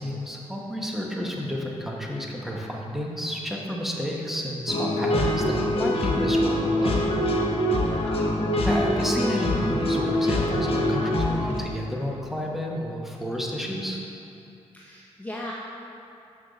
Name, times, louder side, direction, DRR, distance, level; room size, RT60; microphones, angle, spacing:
voice 1, 0.0-7.1 8.6-14.0, equal, 5° right, -2 dB, 1.0 m, -30 dB
sound 1, 4.7-11.6, left 1 dB, 55° left, 1.0 m, -24 dB
voice 2, 7.8-8.2 14.7-15.5, left 1 dB, 15° left, -3 dB, 0.6 m, -38 dB
6.5 x 5.9 x 3.9 m, 2.7 s
cardioid pair, 80°, 11 cm